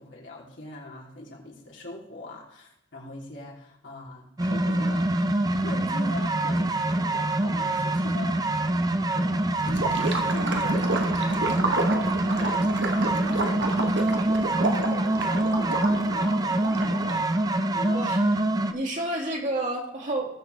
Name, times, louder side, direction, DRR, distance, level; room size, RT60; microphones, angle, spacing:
voice 1, 0.0-5.1 5.5-8.8 9.1-9.4 9.6-11.0 11.2-16.3 16.7-17.0 17.7-18.0, left 2 dB, 75° left, -4 dB, 3.3 m, -41 dB
sound 1, 4.4-18.7, right 1 dB, 20° right, 0.5 m, -25 dB
Gurgling / Liquid, 9.6-17.3, right 2 dB, 65° right, 1.3 m, -30 dB
voice 2, 18.7-20.3, right 1 dB, 45° right, -1 dB, 2.3 m, -29 dB
19.5 x 6.5 x 3.4 m, 0.82 s
head